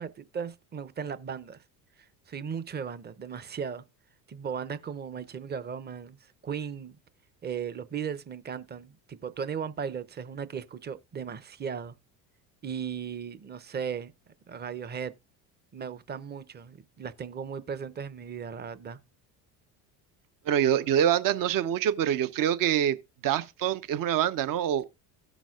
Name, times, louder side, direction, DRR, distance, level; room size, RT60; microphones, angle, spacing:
voice 1, 0.0-1.6 2.3-3.8 4.3-6.2 6.4-7.0 7.4-11.9 12.6-14.1 14.5-15.1 15.7-19.0, right 7 dB, 25° right, 0.8 m, -36 dB
voice 2, 20.5-23.0 23.2-24.8, right 10 dB, 50° right, 1.0 m, -25 dB
16.5 x 6.1 x 2.4 m
supercardioid pair, 85°, 41 cm